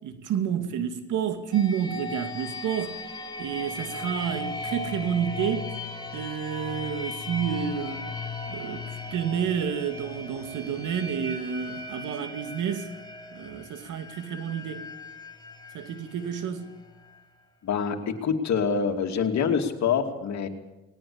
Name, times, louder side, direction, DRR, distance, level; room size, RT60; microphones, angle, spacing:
voice 1, 0.0-3.0 3.4-5.7 6.1-8.0 8.5-12.9 13.3-14.8 15.7-16.7, right 8 dB, 80° right, 2.4 m, -30 dB
sound 1, 1.5-17.2, left 3 dB, 15° left, 3.2 m, -38 dB
voice 2, 17.6-20.5, left 6 dB, 65° left, 2.7 m, -26 dB
20.0 x 18.5 x 8.8 m
cardioid pair, 90°, 30 cm